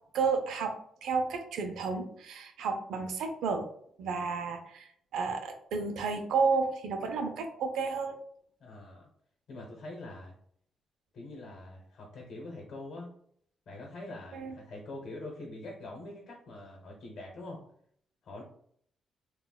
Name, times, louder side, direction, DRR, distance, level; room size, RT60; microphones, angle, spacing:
voice 1, 0.1-3.7 4.0-8.2 14.3-14.5, right 4 dB, 85° right, 6 dB, 0.5 m, -32 dB
voice 2, 8.6-9.1 9.5-10.3 11.1-13.1 13.7-17.6 18.2-18.4, left 2 dB, 65° left, -2 dB, 0.8 m, -44 dB
3.8 x 2.3 x 2.2 m, 0.64 s
cardioid pair, 95°, 0 cm